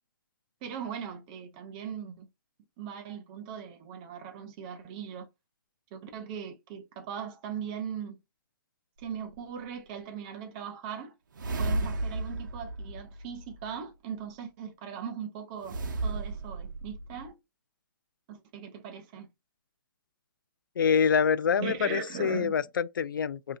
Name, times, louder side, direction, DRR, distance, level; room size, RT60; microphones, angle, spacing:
voice 1, 0.6-2.3 2.8-5.3 5.9-8.2 9.0-11.1 11.6-17.3 18.3-19.3 21.6-22.5, right 7 dB, 25° right, 0.5 m, -39 dB
sound 1, 9.0-9.1 11.3-13.8 15.6-17.3, right 2 dB, 70° right, 0.8 m, -34 dB
voice 2, 20.8-23.6, left 6 dB, 80° left, 0.4 m, -26 dB
3.1 x 2.7 x 2.7 m
hypercardioid pair, 160°, 11 cm